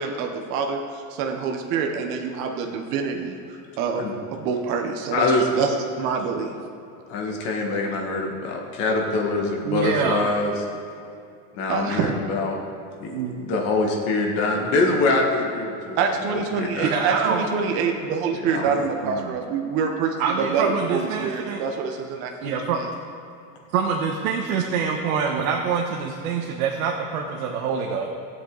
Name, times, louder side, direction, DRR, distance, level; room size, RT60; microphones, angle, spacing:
voice 1, 0.0-3.4 3.8-6.5 11.7-12.1 16.0-20.2 20.5-22.9, right 5 dB, 30° right, 2 dB, 0.8 m, -26 dB
voice 2, 5.1-5.5 7.1-10.8 11.5-12.6 13.0-16.0 16.3-16.9 18.5-18.7, left 3 dB, 35° left, 0 dB, 1.6 m, -24 dB
voice 3, 9.6-10.2 13.1-13.4 16.9-17.5 19.0-19.3 20.2-21.6 22.4-22.8 23.7-28.2, right 6 dB, 80° right, 1 dB, 1.2 m, -25 dB
17.0 x 7.8 x 3.9 m, 2.6 s
supercardioid pair, 175°, 42 cm